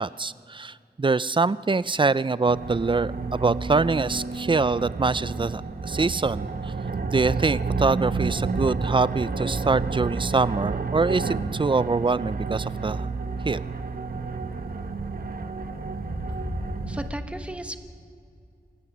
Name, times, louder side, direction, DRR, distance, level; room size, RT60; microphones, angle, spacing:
voice 1, 0.0-6.7 7.1-13.1 13.4-13.6, right 4 dB, 30° right, 17 dB, 0.5 m, -24 dB
sound 1, 2.4-17.1, right 4 dB, 60° right, 1.1 m, -30 dB
sound 2, 5.7-17.1, left 1 dB, 30° left, 4.6 m, -43 dB
voice 2, 16.9-17.8, right 1 dB, 5° right, 7 dB, 1.4 m, -35 dB
27.0 x 16.5 x 6.2 m, 2.4 s
wide cardioid pair, 60°, 17 cm